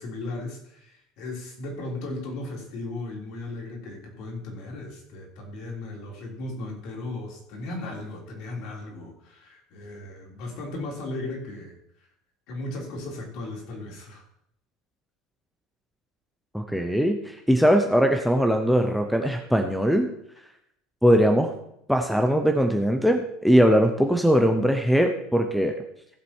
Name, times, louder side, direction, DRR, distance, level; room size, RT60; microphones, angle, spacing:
voice 1, 0.0-11.8 12.5-14.2, left 2 dB, 50° left, 0 dB, 3.6 m, -36 dB
voice 2, 16.5-20.1 21.0-21.5 21.9-25.8, equal, ahead, 5 dB, 0.7 m, -21 dB
16.0 x 7.4 x 4.5 m, 0.74 s
cardioid pair, 170°, 0 cm